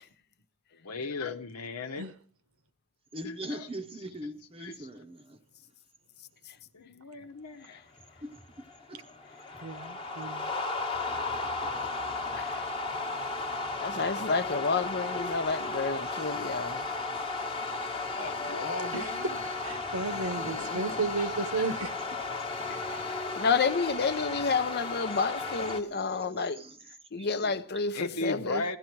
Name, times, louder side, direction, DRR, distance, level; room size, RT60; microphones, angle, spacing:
voice 1, 0.8-2.1 3.2-3.7 4.2-4.3 4.6-4.9 6.9-7.8 18.2-19.5 21.2-21.6 23.1-23.2 27.9-28.8, left 3 dB, 85° left, 1.1 m, -37 dB
voice 2, 3.1-5.4 8.2-8.4 8.9-9.0 22.8-22.9 25.1-27.8, right 1 dB, 25° right, 0.8 m, -43 dB
sound 1, 7.9-25.8, left 3 dB, 25° left, 1.2 m, -34 dB
voice 3, 9.6-10.5 18.9-19.0 19.6-21.9, right 3 dB, 65° right, 1.1 m, -33 dB
voice 4, 13.8-16.8 20.4-20.8 23.3-26.6 27.1-28.6, left 4 dB, 45° left, 0.7 m, -30 dB
16.5 x 13.0 x 4.6 m
head